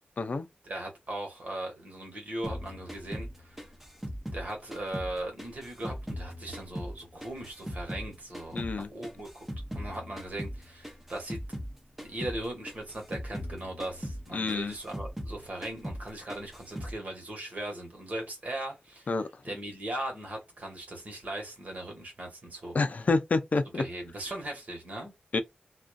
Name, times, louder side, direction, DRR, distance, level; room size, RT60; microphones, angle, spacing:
voice 1, 0.6-3.7 4.3-9.4 9.7-11.4 12.0-19.1 19.4-22.8 23.7-25.1, right 1 dB, 50° right, 1.3 m, -38 dB
sound 1, 2.4-5.1 5.4-8.1 8.3-11.7 12.0-12.4 12.7-15.4 15.6-16.0 16.3-17.0, equal, 5° right, 0.7 m, -39 dB
voice 2, 8.5-8.9 14.3-14.7 19.1-19.3 22.7-23.8 25.3-25.4, left 3 dB, 55° left, 0.4 m, -28 dB
2.5 x 2.4 x 2.3 m
wide cardioid pair, 85°, 3 cm